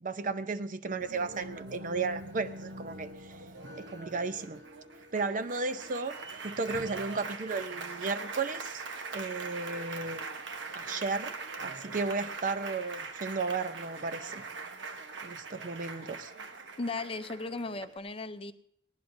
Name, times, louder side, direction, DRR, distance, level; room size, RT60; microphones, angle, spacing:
voice 1, 0.0-3.3 3.8-4.6 5.1-6.2 6.4-8.8 9.1-10.2 10.7-11.3 11.6-14.4 15.2-16.3, right 4 dB, 45° right, 11 dB, 0.6 m, -34 dB
Applause, 1.0-18.0, right 3 dB, 80° right, 1.1 m, -42 dB
voice 2, 16.8-18.5, left 3 dB, 30° left, 10 dB, 0.6 m, -36 dB
19.0 x 18.5 x 2.7 m, 0.64 s
head